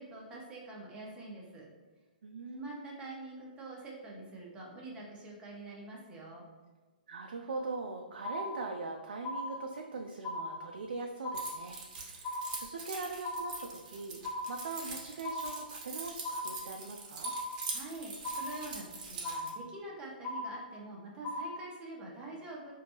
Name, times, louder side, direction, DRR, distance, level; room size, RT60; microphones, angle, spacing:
voice 1, 0.0-1.7 2.5-6.5 17.7-22.7, right 2 dB, 20° right, -3 dB, 0.9 m, -45 dB
voice 2, 2.2-3.0 7.1-17.4, right 3 dB, 70° right, 2 dB, 0.4 m, -41 dB
sound 1, 7.6-7.9 8.2-8.9 9.2-9.9 10.2-10.9 11.2-11.9 12.2-12.9 13.2-13.9 14.2-14.9 15.2-15.9 16.2-16.9 17.2-17.9 18.2-18.9 19.2-19.9 20.2-20.9 21.2-21.9, left 1 dB, 20° left, 0.6 m, -39 dB
Keys jangling, 11.3-19.5, right 4 dB, 45° right, 1.0 m, -43 dB
4.3 x 2.7 x 2.8 m, 1.3 s
hypercardioid pair, 130°, 5 cm